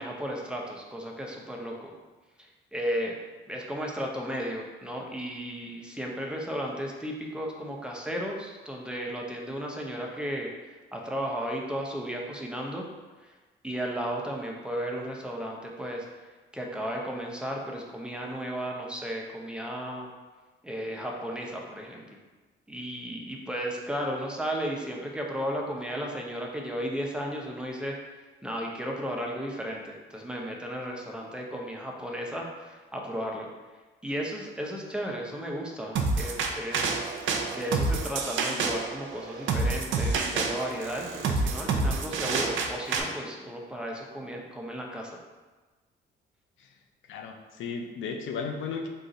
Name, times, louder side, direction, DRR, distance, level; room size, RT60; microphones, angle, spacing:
voice 1, 0.0-1.9 2.4-3.2 3.5-10.5 10.9-12.8 13.2-13.3 13.6-16.1 16.5-20.1 20.6-22.0 22.7-28.0 28.4-33.5 34.0-37.0 37.5-45.2, equal, 5° right, -1 dB, 0.6 m, -34 dB
sound 1, 36.0-43.0, right 4 dB, 75° right, 0.5 m, -28 dB
voice 2, 47.1-48.9, left 5 dB, 80° left, 3 dB, 0.5 m, -34 dB
3.8 x 2.5 x 3.9 m, 1.3 s
cardioid pair, 90°, 20 cm